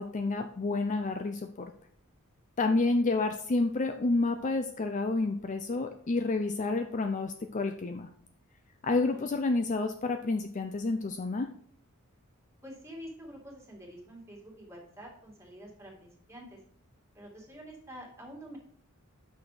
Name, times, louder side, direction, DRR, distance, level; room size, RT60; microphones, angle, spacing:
voice 1, 0.0-1.7 2.6-8.1 8.8-11.5, left 3 dB, 35° left, 6 dB, 0.5 m, -29 dB
voice 2, 12.6-16.6 17.1-18.6, equal, 10° right, -2 dB, 2.2 m, -47 dB
8.3 x 6.1 x 4.9 m, 0.62 s
head